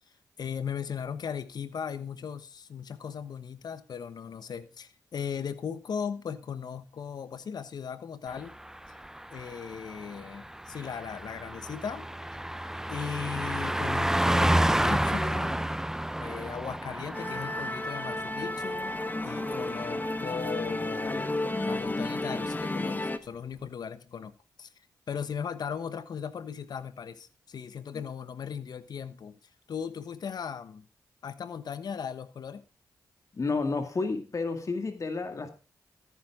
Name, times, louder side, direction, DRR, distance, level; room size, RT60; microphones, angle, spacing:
voice 1, 0.4-8.6 9.3-12.1 12.9-15.5 16.2-21.3 21.7-24.7 25.1-29.4 29.7-30.8 31.2-32.6, left 7 dB, 70° left, 1.1 m, -37 dB
Car passing by, 8.4-20.3 20.6-20.8, right 1 dB, 5° right, 0.7 m, -31 dB
Musical instrument, 17.1-23.2, left 2 dB, 25° left, 1.2 m, -32 dB
voice 2, 33.3-35.5, left 3 dB, 50° left, 2.1 m, -31 dB
14.0 x 9.7 x 3.7 m
cardioid pair, 60°, 7 cm